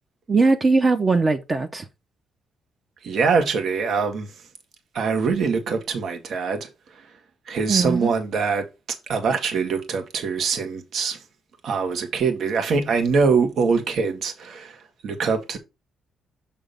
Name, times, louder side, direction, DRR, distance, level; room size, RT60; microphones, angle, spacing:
voice 1, 0.3-1.9 7.7-8.1, right 3 dB, 35° right, 0.9 m, -20 dB
voice 2, 3.0-4.3 4.9-6.7 7.5-8.7 9.1-11.2 11.6-15.6, right 5 dB, 65° right, 1.7 m, -23 dB
7.2 x 3.7 x 5.2 m
cardioid pair, 90°, 0 cm